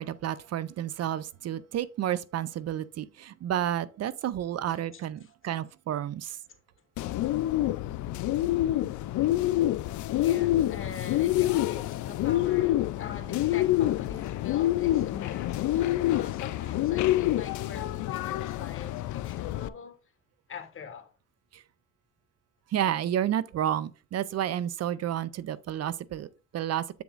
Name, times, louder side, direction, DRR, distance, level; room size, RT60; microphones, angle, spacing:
voice 1, 0.0-6.4 16.0-16.1 21.5-21.6 22.7-26.3 26.5-26.8, right 11 dB, 55° right, 0.5 m, -31 dB
Bird, 7.0-19.7, left 14 dB, 75° left, 0.5 m, -27 dB
voice 2, 10.1-20.0 20.5-21.1, left 6 dB, 45° left, 1.7 m, -43 dB
7.6 x 6.8 x 2.5 m
cardioid pair, 90°, 30 cm